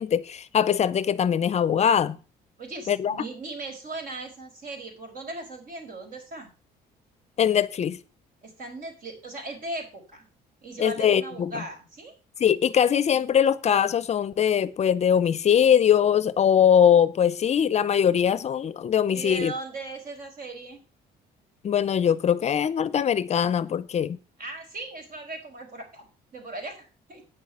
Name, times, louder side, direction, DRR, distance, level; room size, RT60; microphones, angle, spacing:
voice 1, 0.0-2.2 2.9-3.2 7.4-8.0 10.8-11.6 12.4-19.5 21.6-24.2, left 8 dB, 40° left, 0.6 m, -22 dB
voice 2, 2.6-6.5 8.4-10.3 10.6-12.1 19.1-20.8 24.4-27.2, right 2 dB, 55° right, 4.9 m, -38 dB
9.0 x 6.4 x 6.8 m
cardioid pair, 110°, 17 cm